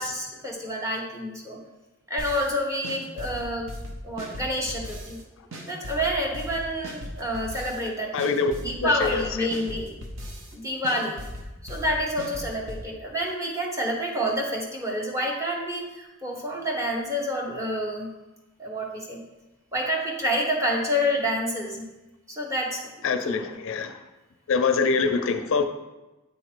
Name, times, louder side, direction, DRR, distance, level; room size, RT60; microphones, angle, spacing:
voice 1, 0.0-1.6 2.1-3.7 4.0-5.2 5.6-8.2 8.6-9.9 10.5-11.2 11.6-18.1 18.6-19.2 19.7-21.9 22.3-23.5, equal, 15° right, -2 dB, 1.1 m, -28 dB
sound 1, 2.2-2.5 2.8-5.2 5.5-7.9 8.2-10.5 10.8-12.8, equal, 65° right, 0.9 m, -38 dB
voice 2, 8.1-8.5 8.8-9.5 23.0-23.9 24.5-25.6, left 5 dB, 65° left, 8 dB, 0.4 m, -24 dB
8.4 x 2.9 x 4.5 m, 1.0 s
head